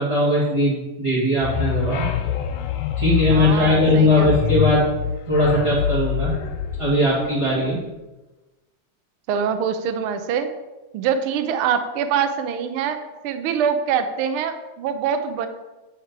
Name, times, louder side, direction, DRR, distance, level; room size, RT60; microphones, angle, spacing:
voice 1, 0.0-2.0 3.0-4.9 5.3-6.3 6.8-7.8, left 1 dB, 15° right, -9 dB, 1.3 m, -19 dB
sound 1, 1.4-7.6, left 9 dB, 70° left, 1.7 m, -26 dB
voice 2, 3.3-4.7 9.3-10.5 10.9-13.0 13.2-15.5, right 7 dB, 80° right, 8 dB, 1.2 m, -24 dB
9.1 x 6.6 x 4.7 m, 1.1 s
omnidirectional pair, 3.4 m